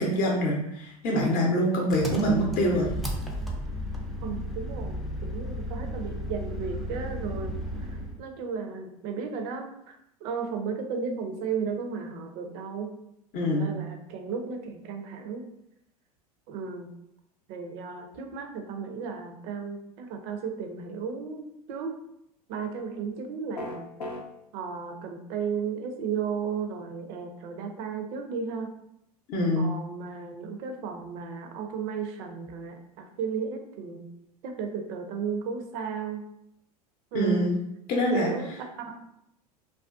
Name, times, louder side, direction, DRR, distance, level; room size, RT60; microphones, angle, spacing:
voice 1, 0.0-2.9 13.3-13.7 29.3-29.7 37.1-37.5 37.9-38.3, equal, 45° left, -1 dB, 0.6 m, -25 dB
Engine, 1.9-8.2, equal, ahead, 0.4 m, -34 dB
voice 2, 4.2-7.5 7.8-10.0 10.2-12.9 13.5-15.5 16.5-16.9 17.5-22.0 22.5-24.1 24.5-28.7 29.6-34.1 34.4-36.2 37.1-37.6 38.1-38.5 38.8-39.0, right 6 dB, 55° right, 4 dB, 0.5 m, -34 dB
sound 1, 23.6-24.2, left 1 dB, 85° left, 0.5 m, -34 dB
2.4 x 2.2 x 2.4 m, 0.80 s
hypercardioid pair, 85°, 20 cm